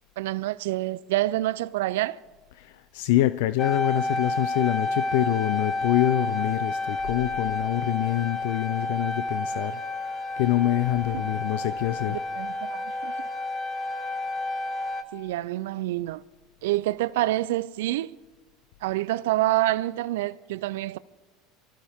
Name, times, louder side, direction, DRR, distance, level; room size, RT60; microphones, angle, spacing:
voice 1, 0.2-2.2 12.1-13.1 15.1-16.2 16.6-18.2 18.8-21.0, right 16 dB, 80° right, 0.4 m, -27 dB
voice 2, 2.6-9.8 10.4-12.2, left 15 dB, 75° left, 0.4 m, -25 dB
sound 1, 3.6-15.0, left 2 dB, 30° left, 1.2 m, -30 dB
23.5 x 14.5 x 3.6 m
supercardioid pair, 100°, 0 cm